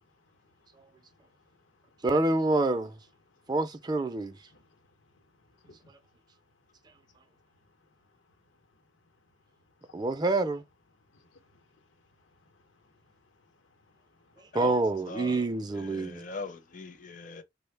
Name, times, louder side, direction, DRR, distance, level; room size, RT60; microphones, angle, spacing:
voice 1, 0.8-2.0 3.3-3.4 4.5-4.8 5.2-5.9 8.7-8.8 9.8-10.0 11.1-11.8 12.2-14.5 16.1-16.2, left 3 dB, 90° left, 0.8 m, -64 dB
voice 2, 2.0-2.9 3.5-4.4 9.9-10.6 14.5-16.3, right 2 dB, 20° right, 0.3 m, -27 dB
voice 3, 15.1-15.5 15.7-17.4, left 3 dB, 40° left, 0.5 m, -41 dB
3.5 x 2.1 x 3.2 m
head